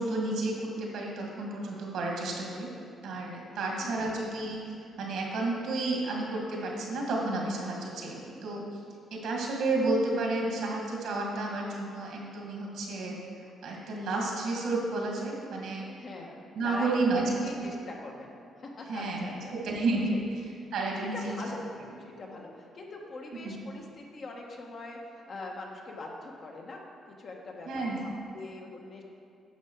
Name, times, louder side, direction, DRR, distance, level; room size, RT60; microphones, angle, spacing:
voice 1, 0.0-2.7 3.0-4.6 5.0-8.6 9.1-13.2 13.6-15.9 16.6-17.3 17.6-17.7 18.9-20.1 20.7-21.3 23.4-23.6 27.7-28.1, right 2 dB, 80° right, -2 dB, 2.0 m, -31 dB
voice 2, 3.5-4.0 16.0-16.3 16.6-19.5 20.1-20.2 21.0-21.6 22.0-29.0, left 2 dB, 50° left, -1 dB, 1.4 m, -42 dB
9.9 x 6.1 x 4.7 m, 2.4 s
cardioid pair, 90°, 0 cm